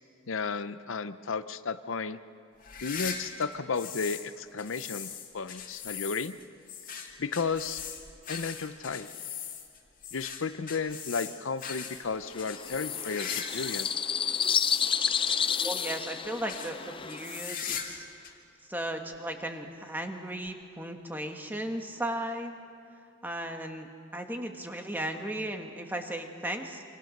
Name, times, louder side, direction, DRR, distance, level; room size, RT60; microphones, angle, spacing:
voice 1, 0.3-2.2 2.8-6.4 7.2-7.8 8.3-9.1 10.1-13.9, left 5 dB, 65° left, 12 dB, 0.7 m, -33 dB
sound 1, 2.6-4.3 4.6-14.0 14.3-16.1 16.5-16.7 17.1-18.0 18.2-18.3 19.1-19.2 20.5-20.6, left 7 dB, 40° left, 2.4 m, -39 dB
sound 2, 12.3-17.4, left 7 dB, 25° left, 0.5 m, -30 dB
voice 2, 15.6-18.0 18.7-22.6 23.2-26.8, right 1 dB, 10° right, 4 dB, 1.6 m, -36 dB
26.5 x 26.0 x 6.6 m, 2.6 s
head